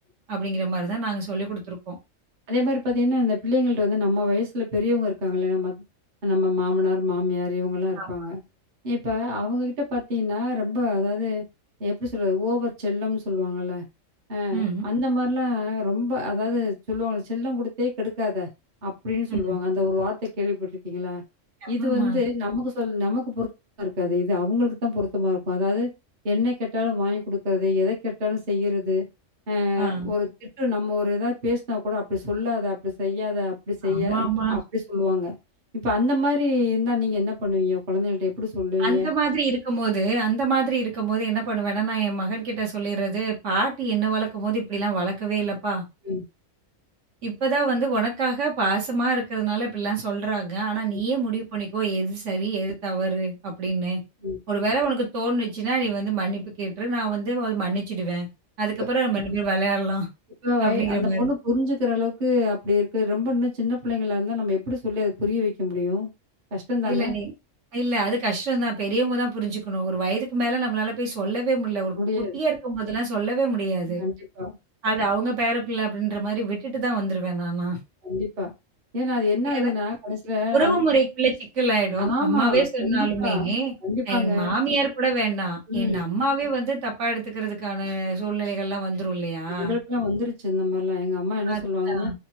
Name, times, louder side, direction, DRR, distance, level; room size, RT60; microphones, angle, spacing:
voice 1, 0.3-2.0 8.0-8.3 14.5-14.9 19.3-19.6 21.6-22.2 29.8-30.1 33.8-34.6 38.8-45.8 47.2-54.0 54.5-58.3 58.6-60.1 60.6-61.3 66.8-67.3 67.7-74.0 74.8-77.8 79.5-79.7 80.5-83.7 84.1-89.8 91.5-92.1, right 3 dB, 70° right, 1 dB, 1.3 m, -26 dB
voice 2, 2.5-5.8 6.2-8.4 8.8-11.4 11.8-13.8 14.3-18.5 18.8-21.2 21.7-23.5 23.8-25.9 26.2-29.1 29.5-35.3 35.8-39.1 46.0-46.2 54.2-54.4 58.8-58.9 60.4-66.1 66.5-67.1 72.0-72.4 74.0-74.6 78.0-78.5 78.9-80.9 82.0-83.5 83.8-84.5 85.7-86.0 89.6-92.1, left 3 dB, 40° right, 1 dB, 1.0 m, -25 dB
3.4 x 2.1 x 2.9 m, 0.25 s
omnidirectional pair, 1.3 m